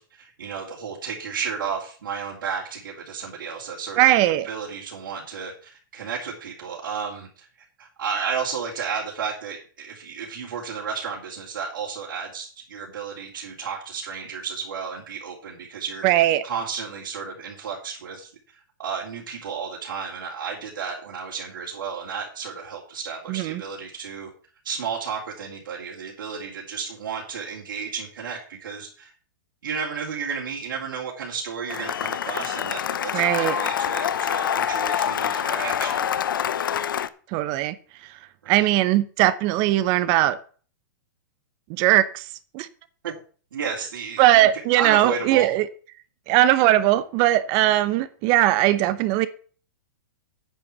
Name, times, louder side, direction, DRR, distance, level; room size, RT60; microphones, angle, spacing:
voice 1, 0.0-4.1 4.4-7.5 7.8-16.1 16.4-24.3 24.6-29.1 29.6-36.2 38.4-38.7 43.0-43.1 43.5-44.5 44.8-45.5, right 6 dB, 85° right, 3.5 m, -33 dB
voice 2, 4.0-4.5 16.0-16.4 23.3-23.6 33.1-33.6 37.3-37.7 38.5-40.4 41.7-42.3 42.5-42.7 44.2-45.7 46.3-49.3, right 14 dB, 35° right, 0.8 m, -19 dB
Cheering / Applause, 31.7-37.1, left 9 dB, 85° left, 0.8 m, -26 dB
9.2 x 7.0 x 7.0 m
hypercardioid pair, 150°, 11 cm